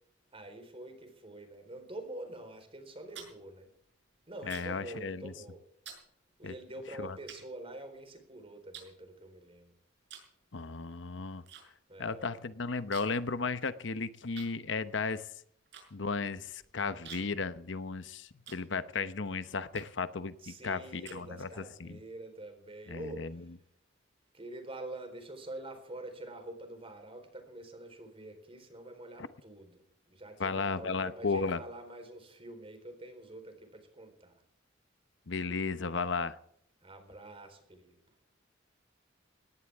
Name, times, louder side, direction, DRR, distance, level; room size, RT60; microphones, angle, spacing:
voice 1, 0.3-3.7 4.3-5.6 6.4-9.7 11.9-12.4 20.4-23.5 24.3-29.8 30.1-34.4 36.8-38.0, right 1 dB, 30° right, 6 dB, 4.1 m, -46 dB
sound 1, 2.9-4.9 5.2-5.5 5.8-6.1 6.7-6.8 7.3-8.2 8.7-9.6 10.0-10.4 10.6-11.6 11.9-12.0 12.3-13.3 13.6-13.7 14.3-19.1 19.7-20.1 20.6-21.7, right 8 dB, 65° right, 6.5 m, -51 dB
voice 2, 4.5-5.3 6.4-6.5 7.0-7.2 10.5-11.4 12.0-15.3 15.9-22.0 22.9-23.4 29.2-29.3 30.4-31.6 35.3-36.4, left 4 dB, 70° left, 13 dB, 0.9 m, -35 dB
20.0 x 18.0 x 3.6 m, 0.71 s
head